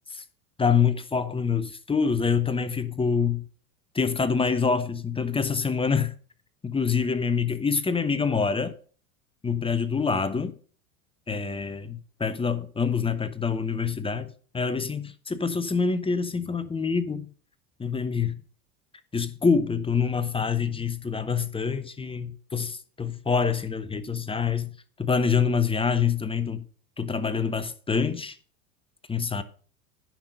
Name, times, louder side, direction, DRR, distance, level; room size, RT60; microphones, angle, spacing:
voice 1, 0.6-3.4 3.9-6.1 6.6-8.7 9.4-10.5 11.3-14.3 14.5-17.3 17.8-18.3 19.1-24.7 25.0-26.6 27.0-28.4 29.1-29.4, left 5 dB, 15° left, 0.8 m, -26 dB
10.5 x 5.7 x 6.5 m
hypercardioid pair, 90°, 43 cm